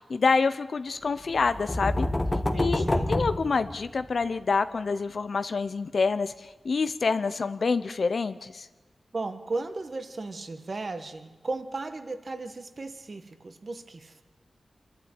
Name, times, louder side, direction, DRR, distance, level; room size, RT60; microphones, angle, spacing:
voice 1, 0.1-2.1 2.5-8.7, left 4 dB, 65° left, 12 dB, 0.8 m, -27 dB
sound 1, 1.3-4.2, left 1 dB, 20° left, 1.2 m, -28 dB
voice 2, 2.3-3.1 9.1-14.2, right 3 dB, 50° right, 9 dB, 1.5 m, -36 dB
26.5 x 11.5 x 9.0 m, 1.2 s
wide cardioid pair, 95°, 0 cm